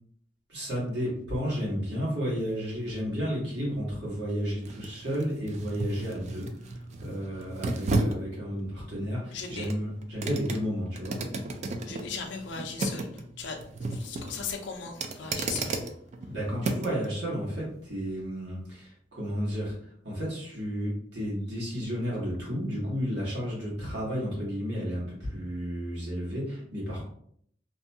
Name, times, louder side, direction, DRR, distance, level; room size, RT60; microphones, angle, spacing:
voice 1, 0.5-11.2 16.3-27.1, equal, 70° right, -5 dB, 1.3 m, -32 dB
sound 1, 2.4-17.1 17.5-17.7, right 2 dB, 40° right, 0.3 m, -35 dB
voice 2, 9.3-9.7 11.9-15.8, left 5 dB, 75° left, 3 dB, 0.4 m, -38 dB
2.7 x 2.2 x 2.6 m, 0.65 s
head